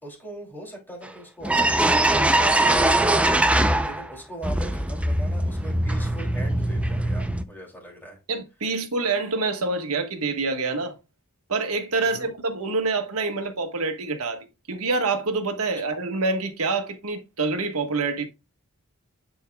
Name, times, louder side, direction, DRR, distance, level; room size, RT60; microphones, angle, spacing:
voice 1, 0.0-8.2 12.0-12.3, right 1 dB, 10° left, 2.7 m, -41 dB
sound 1, 1.0-1.1 1.4-4.1 4.4-7.4, right 1 dB, 5° right, 0.4 m, -22 dB
voice 2, 8.3-10.9 11.5-18.3, right 3 dB, 75° right, 1.4 m, -26 dB
10.5 x 4.6 x 2.2 m
head